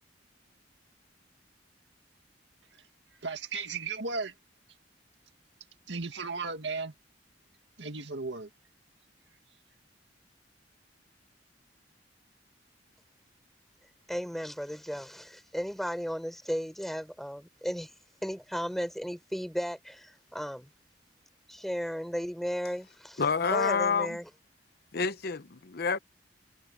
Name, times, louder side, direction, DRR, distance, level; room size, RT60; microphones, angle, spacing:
voice 1, 3.2-4.3 5.9-6.9 7.8-8.5, right 4 dB, 75° right, 2.0 m, -35 dB
voice 2, 14.1-17.9 18.2-20.7 21.5-23.2 23.5-24.3, equal, ahead, 4.0 m, -35 dB
voice 3, 23.2-24.2 24.9-26.0, left 5 dB, 55° left, 0.8 m, -28 dB
head